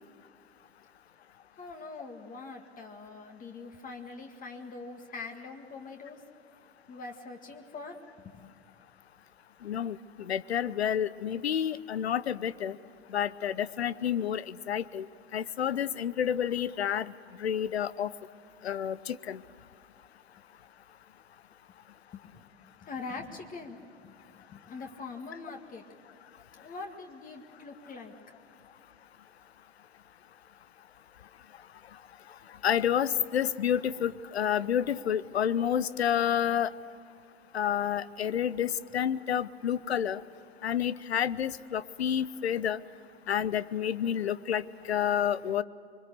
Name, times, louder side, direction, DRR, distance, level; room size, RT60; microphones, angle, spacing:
voice 1, 1.6-6.2 6.9-8.0 8.2-8.5 22.1-22.5 22.8-25.8 26.6-28.1, left 4 dB, 25° left, 4 dB, 1.9 m, -43 dB
voice 2, 9.6-10.0 10.3-12.7 13.1-15.1 15.3-17.1 17.4-18.1 18.6-19.4 32.6-36.7 37.5-40.2 40.6-42.8 43.3-45.6, left 9 dB, 75° left, 18 dB, 0.8 m, -29 dB
25.0 x 23.0 x 6.8 m, 2.6 s
figure-of-eight pair, 90°, 32 cm